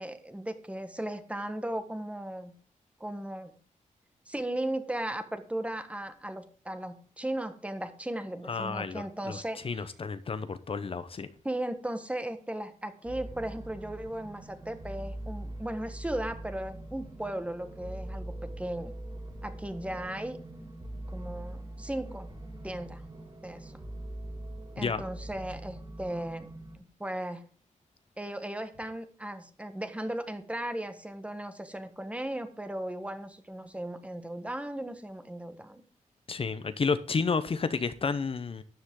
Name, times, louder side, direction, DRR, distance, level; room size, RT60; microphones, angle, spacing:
voice 1, 0.0-2.5 3.0-3.6 4.3-9.6 11.4-18.9 19.4-20.4 21.1-22.3 22.6-23.0 23.4-23.8 24.8-26.5 26.8-27.4 28.2-35.8, right 1 dB, 10° right, 1.5 m, -36 dB
voice 2, 8.5-11.3 24.8-25.0 36.3-38.6, left 5 dB, 45° left, 0.8 m, -31 dB
sound 1, 13.0-26.8, right 1 dB, 30° right, 4.9 m, -42 dB
13.0 x 10.5 x 3.8 m
wide cardioid pair, 130°, 13 cm